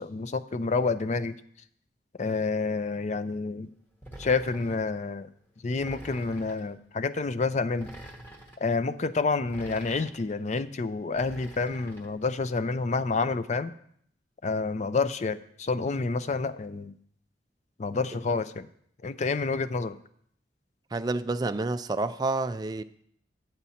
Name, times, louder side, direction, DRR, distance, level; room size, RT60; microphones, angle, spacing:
voice 1, 0.0-1.4 2.2-3.7 4.2-5.3 5.6-7.9 8.6-13.7 14.4-16.9 17.8-18.7 19.0-20.0, left 4 dB, 40° left, 0.4 m, -28 dB
sound 1, 4.0-4.9 5.8-6.7 7.7-8.6 9.4-10.3 11.1-12.1, right 1 dB, 10° left, 1.1 m, -46 dB
voice 2, 20.9-22.8, right 3 dB, 20° right, 0.3 m, -29 dB
10.5 x 8.0 x 4.2 m
head